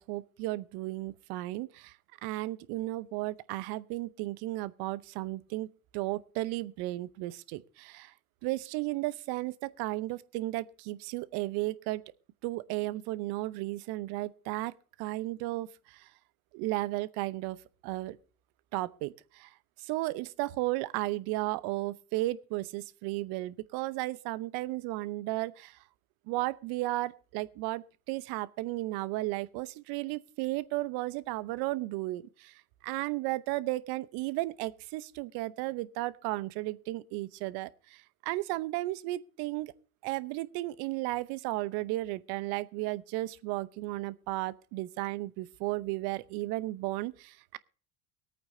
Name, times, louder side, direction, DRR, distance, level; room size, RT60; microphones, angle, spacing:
voice 1, 0.0-1.9 2.2-5.7 5.9-8.1 8.4-12.0 12.4-14.7 15.0-16.0 16.5-17.6 17.8-18.2 18.7-19.5 19.9-25.7 26.3-32.5 32.8-39.7 40.0-47.6, right 18 dB, 60° right, 0.9 m, -34 dB
23.5 x 8.9 x 2.7 m
hypercardioid pair, 80°, 44 cm